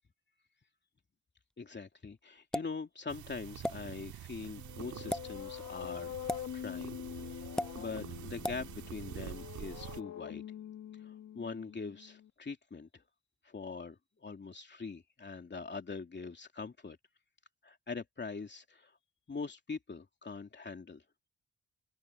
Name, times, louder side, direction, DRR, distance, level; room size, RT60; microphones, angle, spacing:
voice 1, 1.6-7.5 7.8-10.5 11.0-13.0 13.4-17.0 17.6-18.9 19.3-21.0, left 4 dB, 35° left, 2.8 m, -43 dB
sound 1, 2.5-2.8 3.6-3.8 5.0-5.2 6.3-6.5 7.6-7.7 8.4-8.6, left 1 dB, ahead, 0.4 m, -34 dB
sound 2, 3.1-10.0, right 11 dB, 80° right, 1.9 m, -47 dB
sound 3, 4.5-12.3, left 10 dB, 65° left, 2.0 m, -45 dB
supercardioid pair, 50°, 30 cm